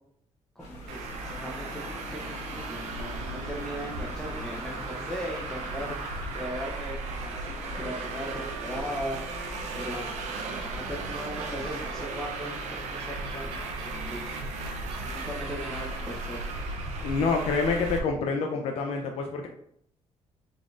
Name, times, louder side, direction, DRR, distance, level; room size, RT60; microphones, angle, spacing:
sound 1, 0.6-6.4, left 1 dB, 90° left, 1.4 m, -45 dB
voice 1, 0.6-6.0 6.3-9.2 9.7-16.5, equal, 5° left, -3 dB, 0.6 m, -39 dB
Traffic noise roadway noise, 0.9-18.0, right 3 dB, 90° right, 0.6 m, -36 dB
Gull seagull, 1.1-18.0, left 2 dB, 50° right, 0.6 m, -43 dB
voice 2, 17.0-19.5, left 4 dB, 60° left, 2 dB, 0.4 m, -27 dB
3.9 x 3.6 x 2.4 m, 0.71 s
cardioid pair, 125°, 11 cm